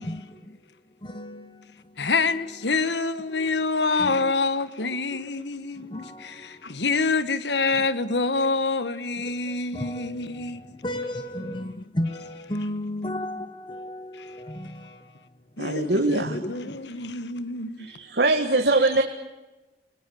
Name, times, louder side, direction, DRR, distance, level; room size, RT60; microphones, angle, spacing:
voice 1, 0.0-2.7 3.3-3.6 4.0-4.3 4.8-6.8 7.7-7.9 9.2-17.1, left 1 dB, 25° left, 1.1 m, -36 dB
voice 2, 2.0-10.6 15.6-17.9, left 3 dB, 85° left, 1.4 m, -26 dB
voice 3, 15.6-16.4 17.8-19.0, right 2 dB, 70° right, 2.0 m, -22 dB
29.0 x 20.0 x 8.4 m
head